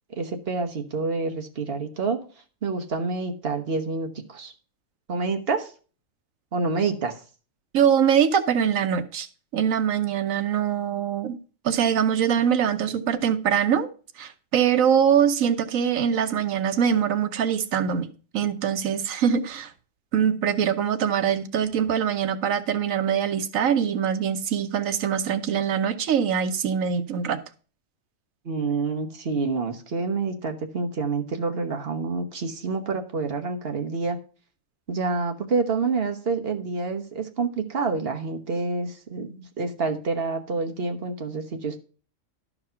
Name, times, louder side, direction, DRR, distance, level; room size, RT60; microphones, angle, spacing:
voice 1, 0.1-2.2 2.6-4.5 5.1-5.7 6.5-7.2 28.4-34.2 34.9-41.8, right 4 dB, 50° right, 1.3 m, -28 dB
voice 2, 7.7-9.3 9.5-11.4 11.6-13.9 14.2-18.1 18.3-19.7 20.1-27.4, right 8 dB, 85° right, 1.3 m, -23 dB
12.0 x 4.8 x 5.5 m
omnidirectional pair, 1.4 m